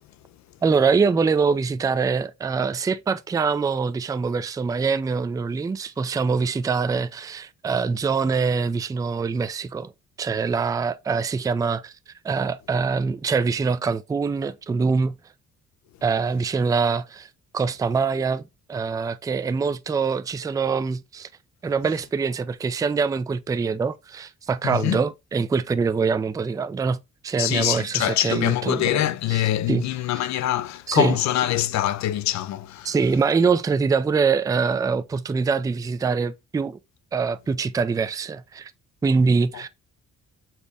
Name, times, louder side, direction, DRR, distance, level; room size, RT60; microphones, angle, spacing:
voice 1, 0.6-9.9 10.2-11.9 12.2-15.2 16.0-17.3 17.5-18.4 18.7-21.3 21.6-29.0 29.3-29.4 29.7-29.8 30.9-31.1 32.8-36.8 37.1-38.7 39.0-39.7, right 5 dB, 10° right, 0.3 m, -24 dB
voice 2, 24.6-25.0 27.4-33.0 39.5-39.7, left 13 dB, 65° left, 0.5 m, -24 dB
4.2 x 3.5 x 3.3 m
cardioid pair, 90°, 30 cm